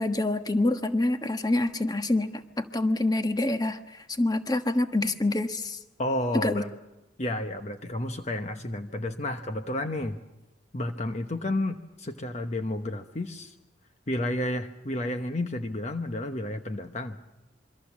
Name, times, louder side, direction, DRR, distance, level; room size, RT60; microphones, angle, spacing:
voice 1, 0.0-2.3 2.6-5.8 6.3-6.6, left 2 dB, 20° left, 8 dB, 1.3 m, -26 dB
voice 2, 6.0-6.7 7.2-10.2 10.7-13.5 14.1-17.2, left 1 dB, 40° left, 6 dB, 1.1 m, -31 dB
27.0 x 24.0 x 7.3 m, 0.96 s
head